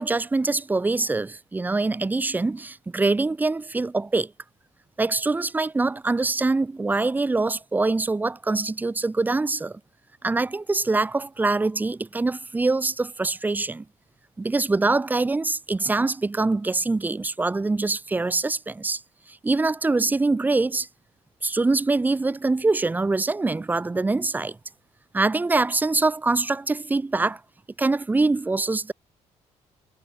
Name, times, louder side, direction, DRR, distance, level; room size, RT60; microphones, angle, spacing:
voice 1, 0.0-4.3 5.0-9.8 10.2-13.8 14.4-19.0 19.3-20.9 21.4-24.6 25.1-27.4 27.8-28.9, right 3 dB, 15° right, 1.7 m, -24 dB
cardioid pair, 150°, 12 cm